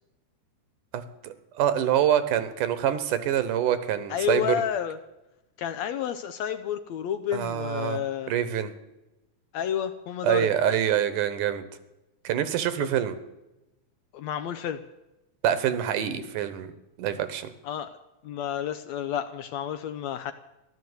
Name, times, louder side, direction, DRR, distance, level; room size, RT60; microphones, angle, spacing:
voice 1, 0.9-4.6 7.3-8.0 8.3-8.7 10.2-11.7 12.2-13.2 15.4-16.7 17.0-17.5, right 10 dB, 80° right, 12 dB, 2.7 m, -25 dB
voice 2, 4.1-5.0 5.6-8.3 9.5-10.5 14.1-14.8 17.6-17.9 18.2-20.3, left 9 dB, 75° left, 9 dB, 1.7 m, -30 dB
14.5 x 12.0 x 8.0 m, 0.97 s
omnidirectional pair, 3.7 m